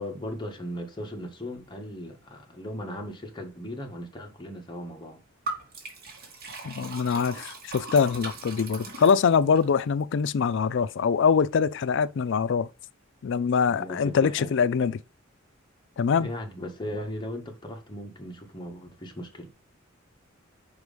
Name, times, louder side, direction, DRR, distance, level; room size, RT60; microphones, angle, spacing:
voice 1, 0.0-5.2 13.7-14.5 16.1-19.5, left 1 dB, 25° left, 1.6 m, -37 dB
Liquid, 5.5-9.7, right 3 dB, 50° right, 2.0 m, -39 dB
voice 2, 6.6-12.7 13.2-15.0 16.0-16.3, left 6 dB, 65° left, 0.4 m, -23 dB
5.1 x 4.8 x 5.1 m
head